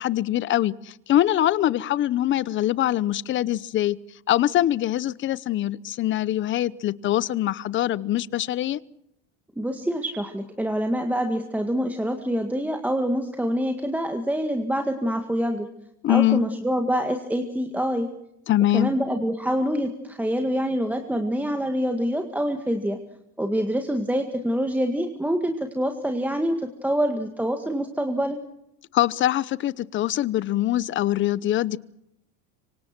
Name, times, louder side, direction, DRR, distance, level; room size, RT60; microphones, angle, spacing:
voice 1, 0.0-4.0 4.3-8.8 16.0-16.4 18.5-18.9 28.9-31.8, left 13 dB, 30° left, 0.8 m, -23 dB
voice 2, 9.6-15.7 16.1-18.1 18.7-23.0 23.4-28.4, equal, 5° right, 1.9 m, -26 dB
25.5 x 25.5 x 6.1 m
cardioid pair, 155°, 37 cm